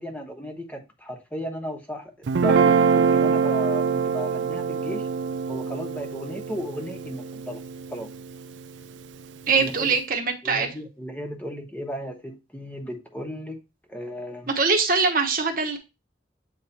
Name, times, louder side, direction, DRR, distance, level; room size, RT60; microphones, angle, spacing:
voice 1, 0.0-5.1 5.5-7.6 7.9-8.1 9.5-9.9 10.4-13.6 13.9-14.5, equal, 10° left, 1.1 m, -35 dB
Guitar, 2.3-8.6, right 5 dB, 90° right, 0.4 m, -24 dB
voice 2, 9.5-10.7 14.5-15.8, right 4 dB, 50° right, 1.1 m, -22 dB
8.2 x 3.2 x 4.3 m
head